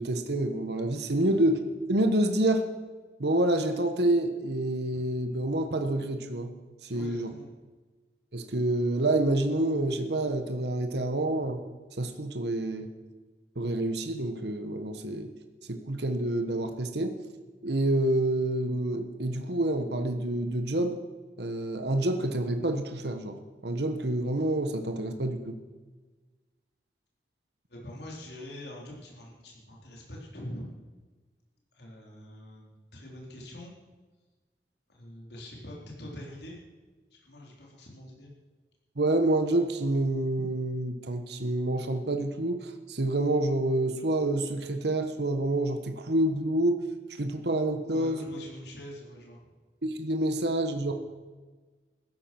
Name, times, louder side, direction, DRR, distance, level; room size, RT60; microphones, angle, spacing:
voice 1, 0.0-1.6 1.9-2.7 3.2-6.5 6.8-7.3 8.3-11.6 12.0-12.9 13.5-15.3 15.7-17.2 17.6-21.0 21.4-25.6 39.0-46.8 47.2-48.3 49.8-51.0, right 1 dB, 75° right, 7 dB, 1.3 m, -28 dB
voice 2, 6.9-7.5 27.7-30.6 31.7-33.7 34.9-36.6 37.1-38.3 47.9-49.4, left 1 dB, 75° left, -2 dB, 3.9 m, -44 dB
16.0 x 13.5 x 6.1 m, 1.3 s
head